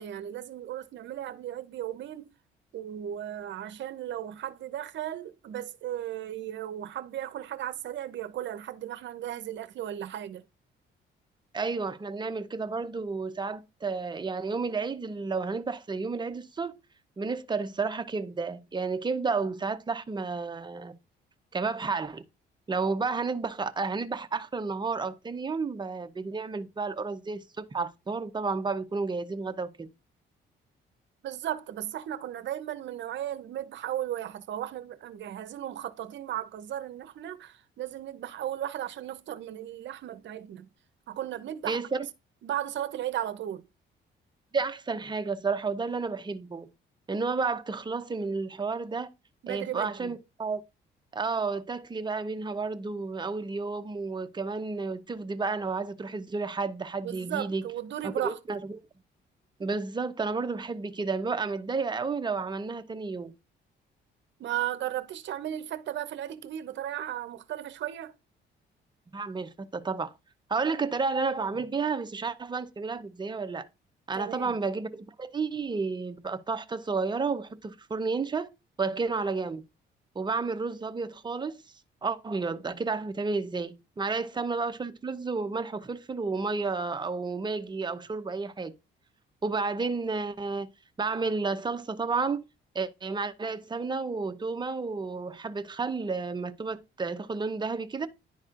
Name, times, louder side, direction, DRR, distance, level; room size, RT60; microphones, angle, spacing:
voice 1, 0.0-2.3 2.7-10.4 31.2-40.7 41.1-42.1 42.4-43.6 49.4-50.1 57.0-58.4 64.4-68.1 74.2-74.5, right 11 dB, 65° right, 0.7 m, -35 dB
voice 2, 11.5-16.7 17.2-20.9 21.5-22.2 22.7-29.7 41.7-42.0 44.5-46.7 47.1-49.1 49.5-50.6 51.1-57.7 58.0-58.8 59.6-63.3 69.1-70.1 70.5-73.7 74.1-78.5 78.8-79.6 80.1-81.6 82.0-88.7 89.4-90.7 91.0-92.4 92.7-98.1, right 4 dB, 20° right, 0.7 m, -31 dB
11.0 x 4.2 x 2.5 m
cardioid pair, 90°, 20 cm